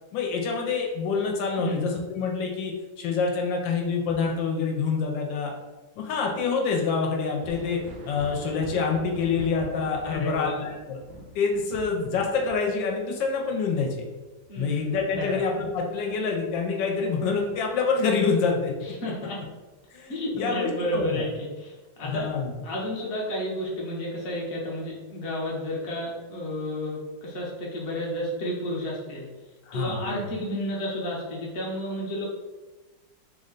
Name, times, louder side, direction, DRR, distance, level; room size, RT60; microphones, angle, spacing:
voice 1, 0.1-5.5 6.0-11.0 11.3-14.1 14.6-18.7 19.9-21.2 22.0-22.5 29.6-30.3, left 5 dB, 80° left, 1 dB, 1.3 m, -27 dB
Thunder, 7.4-16.6 17.0-18.2 19.8-19.9 20.6-20.8, right 2 dB, 80° right, 1.3 m, -45 dB
voice 2, 10.0-10.5 14.5-15.4 18.8-19.4 20.1-22.3 22.6-29.3 29.7-32.2, equal, 50° left, -4 dB, 0.7 m, -31 dB
3.3 x 2.1 x 3.8 m, 1.2 s
omnidirectional pair, 2.1 m